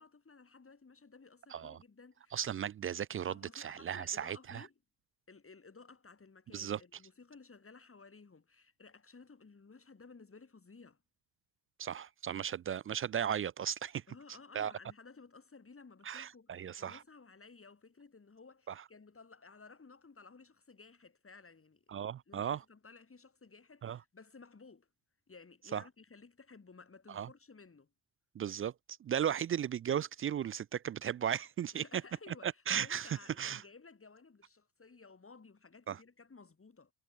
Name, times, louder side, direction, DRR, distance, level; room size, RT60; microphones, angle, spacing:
voice 1, 0.0-2.5 3.3-4.7 5.3-11.0 14.1-21.8 22.3-24.9 25.3-27.9 31.7-36.9, left 4 dB, 30° left, 6.6 m, -56 dB
voice 2, 2.3-4.7 6.5-6.8 11.8-14.0 14.5-14.7 16.0-17.0 18.7-18.8 21.9-22.6 23.8-24.0 25.7-25.8 27.1-27.3 28.4-28.7 29.0-32.0 32.3-33.6 35.9-36.0, right 9 dB, 30° right, 0.4 m, -36 dB
hypercardioid pair, 45°, 42 cm